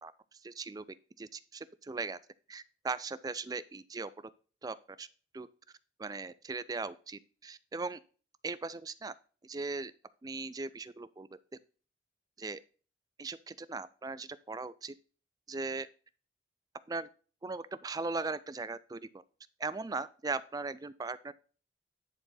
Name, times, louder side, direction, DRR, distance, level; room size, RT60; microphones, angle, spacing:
voice 1, 0.0-0.8 1.2-2.2 2.5-4.1 4.6-5.1 5.3-5.5 6.0-8.0 8.4-9.1 9.4-9.9 10.2-11.3 12.4-12.6 13.2-14.9 15.5-15.9 16.9-17.1 17.4-19.2 19.6-21.3, right 3 dB, 20° right, 15 dB, 0.4 m, -38 dB
10.5 x 4.6 x 4.0 m, 0.38 s
head